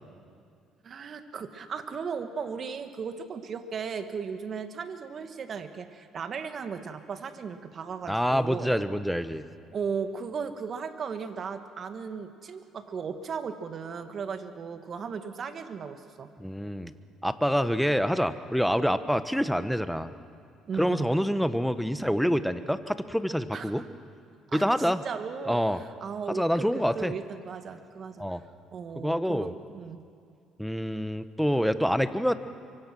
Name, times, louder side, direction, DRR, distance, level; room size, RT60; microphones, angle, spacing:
voice 1, 0.8-8.7 9.7-16.3 20.7-21.1 23.5-23.9 24.5-28.4 28.7-30.0, right 6 dB, 50° right, 8 dB, 1.9 m, -36 dB
voice 2, 8.1-9.5 16.4-16.9 17.2-20.1 20.8-23.8 24.5-25.0 25.5-25.8 26.3-27.1 28.2-28.4 29.0-29.5 30.6-32.3, equal, ahead, 11 dB, 1.3 m, -26 dB
24.5 x 24.5 x 6.3 m, 2.4 s
hypercardioid pair, 65°, 0 cm